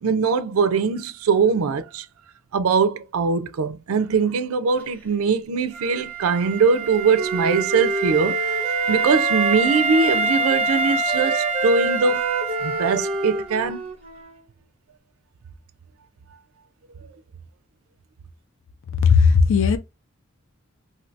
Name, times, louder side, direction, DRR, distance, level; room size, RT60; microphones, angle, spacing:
voice 1, 0.0-2.1 2.5-8.4 8.9-12.3 12.6-13.9, right 5 dB, 80° right, 0.4 m, -21 dB
Wind instrument woodwind instrument, 5.7-13.5, right 4 dB, 10° left, 0.8 m, -26 dB
Wind instrument woodwind instrument 2, 6.7-10.4 10.6-14.5, right 2 dB, 30° right, 0.7 m, -29 dB
voice 2, 19.0-19.8, left 5 dB, 65° left, 0.4 m, -15 dB
2.7 x 2.6 x 3.1 m
head